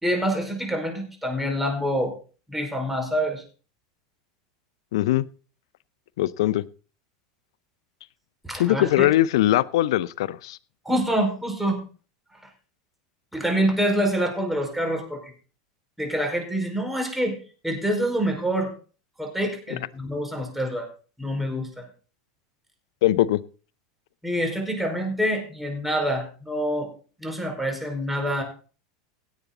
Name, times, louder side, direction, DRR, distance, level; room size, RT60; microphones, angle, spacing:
voice 1, 0.0-2.1 2.5-3.4 8.4-9.1 10.8-11.8 13.3-15.3 16.0-17.4 17.6-18.7 19.2-20.9 21.2-21.9 24.2-26.9 27.2-28.4, equal, 5° right, 5.0 m, -26 dB
voice 2, 4.9-5.3 6.2-6.6 8.5-10.6 23.0-23.4, left 14 dB, 75° left, 0.6 m, -21 dB
17.0 x 8.3 x 4.0 m
hypercardioid pair, 100°, 3 cm